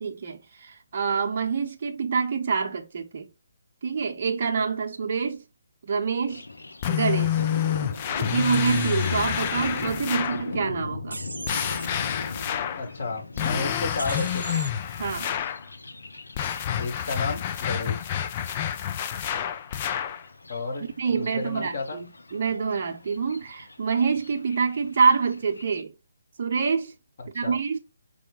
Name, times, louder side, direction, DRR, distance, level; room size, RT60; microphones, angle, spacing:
voice 1, 0.0-3.3 3.8-5.4 5.8-6.4 6.9-7.4 8.2-11.2 15.0-15.3 21.0-25.9 26.4-26.9 27.3-27.8, right 5 dB, 45° right, 0.7 m, -26 dB
Thunder, 6.3-25.8, left 3 dB, 75° left, 0.6 m, -40 dB
sound 1, 6.8-10.5 11.5-12.9 13.4-15.6 16.4-20.2, left 9 dB, 30° left, 0.4 m, -28 dB
sound 2, 8.5-9.1 11.1-11.9 14.0-14.7, right 2 dB, 80° right, 0.5 m, -37 dB
voice 2, 12.7-14.6 16.8-18.1 20.5-22.0 27.4-27.6, left 3 dB, 55° left, 1.6 m, -32 dB
4.7 x 2.1 x 3.8 m
figure-of-eight pair, 145°, 0 cm